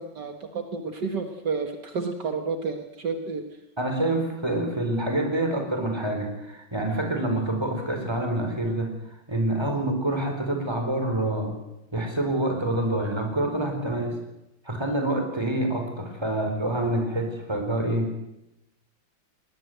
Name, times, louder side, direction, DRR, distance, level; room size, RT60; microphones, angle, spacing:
voice 1, 0.0-3.4, right 4 dB, 65° right, 6 dB, 2.1 m, -30 dB
voice 2, 3.8-8.9 9.3-11.6 11.9-14.2 14.6-18.1, right 1 dB, 15° right, 4 dB, 4.5 m, -27 dB
21.5 x 19.5 x 8.0 m, 0.90 s
omnidirectional pair, 2.0 m